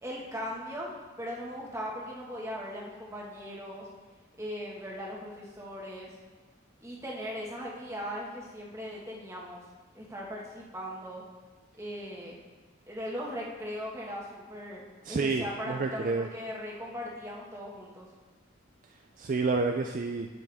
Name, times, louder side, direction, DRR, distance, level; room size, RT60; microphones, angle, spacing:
voice 1, 0.0-3.9 4.4-6.2 6.8-9.6 9.9-11.2 11.8-12.4 12.9-18.1, equal, 15° right, -3 dB, 1.6 m, -39 dB
voice 2, 15.0-16.3 19.2-20.3, right 3 dB, 40° right, 4 dB, 0.4 m, -29 dB
15.0 x 6.0 x 3.5 m, 1.4 s
head